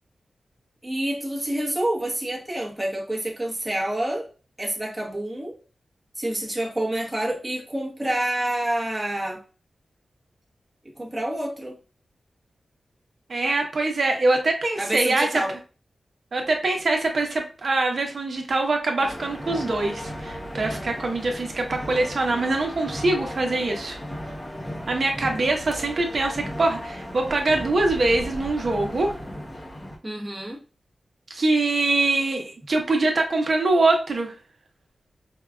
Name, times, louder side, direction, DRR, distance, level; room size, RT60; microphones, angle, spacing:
voice 1, 0.8-4.3 4.6-5.6 6.2-9.4 11.0-11.8 14.8-15.5 30.0-30.6, right 1 dB, 15° right, 1.0 m, -28 dB
voice 2, 13.3-15.4 16.3-24.0 24.9-29.1 31.3-34.3, right 2 dB, 55° right, 0.9 m, -23 dB
sound 1, 19.0-30.0, equal, 15° left, 0.8 m, -36 dB
4.6 x 2.3 x 2.3 m
wide cardioid pair, 95°, 0 cm